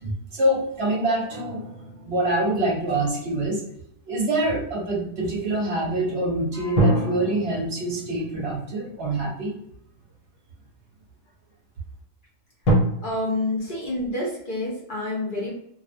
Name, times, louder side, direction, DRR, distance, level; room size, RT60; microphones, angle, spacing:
voice 1, 0.0-1.6 2.0-3.6 4.1-9.6, right 1 dB, 60° right, -2 dB, 0.8 m, -25 dB
sound 1, 1.3-3.9 6.7-10.1 10.8-10.9 12.6-12.7, right 1 dB, 90° left, 1.1 m, -28 dB
voice 2, 13.0-15.6, left 2 dB, 45° left, -5 dB, 0.8 m, -28 dB
2.4 x 2.1 x 2.4 m, 0.73 s
omnidirectional pair, 1.3 m